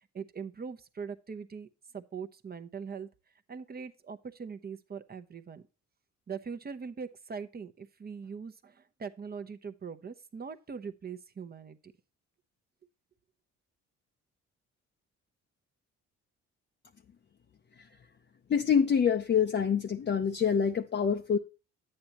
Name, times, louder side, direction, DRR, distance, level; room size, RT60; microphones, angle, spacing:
voice 1, 0.1-1.7 1.9-3.1 3.5-5.6 6.3-11.9, right 6 dB, 30° right, 0.8 m, -41 dB
voice 2, 18.5-21.4, left 7 dB, 35° left, 0.7 m, -26 dB
10.5 x 8.6 x 2.9 m
cardioid pair, 90°, 30 cm